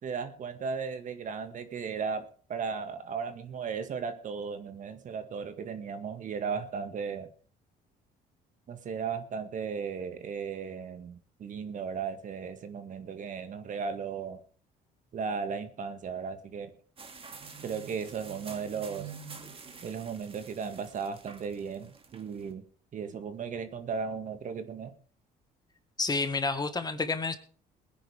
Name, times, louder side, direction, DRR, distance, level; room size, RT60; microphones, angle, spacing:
voice 1, 0.0-7.3 8.7-14.4 15.1-16.8 17.6-19.1 19.8-22.6 22.9-24.9, right 6 dB, 50° right, 9 dB, 2.0 m, -36 dB
sound 1, 17.0-22.5, right 5 dB, 35° right, 2.4 m, -47 dB
voice 2, 26.0-27.4, left 3 dB, 25° left, 9 dB, 1.7 m, -29 dB
21.5 x 10.0 x 3.6 m, 0.43 s
cardioid pair, 110°, 17 cm